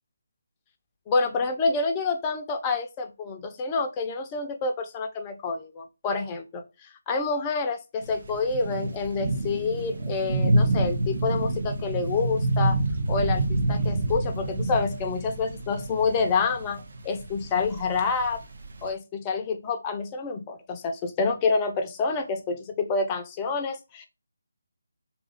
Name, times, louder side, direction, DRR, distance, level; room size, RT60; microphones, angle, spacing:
voice 1, 1.1-12.8 13.1-18.4 18.8-24.1, left 4 dB, 20° left, 5 dB, 0.5 m, -28 dB
sound 1, 8.0-18.9, right 2 dB, 50° right, 0.7 m, -28 dB
2.6 x 2.4 x 4.0 m, 0.28 s
figure-of-eight pair, 155°, 0 cm